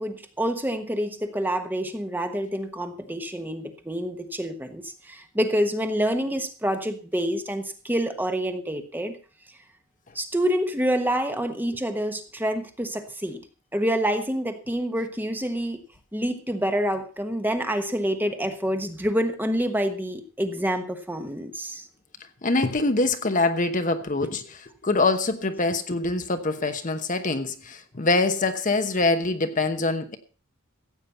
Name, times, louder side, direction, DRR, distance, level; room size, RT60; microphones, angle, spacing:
voice 1, 0.0-9.1 10.1-13.4 13.7-15.8 16.1-21.9, equal, 10° right, 1.2 m, -27 dB
voice 2, 22.4-30.2, left 3 dB, 35° left, 1.0 m, -24 dB
15.0 x 8.7 x 5.5 m
head